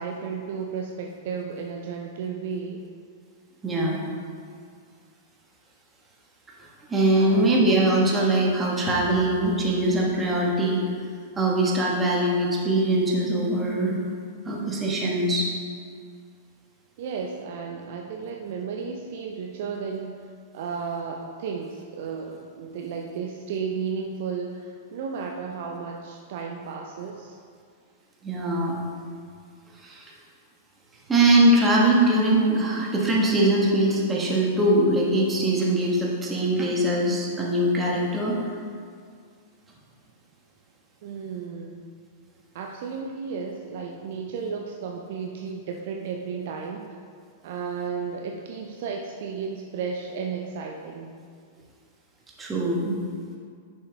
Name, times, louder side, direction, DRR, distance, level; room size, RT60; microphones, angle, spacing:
voice 1, 0.0-2.8 7.1-7.9 17.0-20.2 20.5-27.4 41.0-41.8 42.5-46.8 47.4-51.1, right 5 dB, 50° right, 1 dB, 0.5 m, -33 dB
voice 2, 3.6-4.0 6.9-10.8 11.4-13.9 14.4-15.5 28.2-28.8 29.8-30.1 31.1-38.4 52.4-53.0, right 1 dB, 15° right, -3 dB, 1.4 m, -22 dB
10.5 x 6.5 x 2.3 m, 2.1 s
figure-of-eight pair, 100°, 0 cm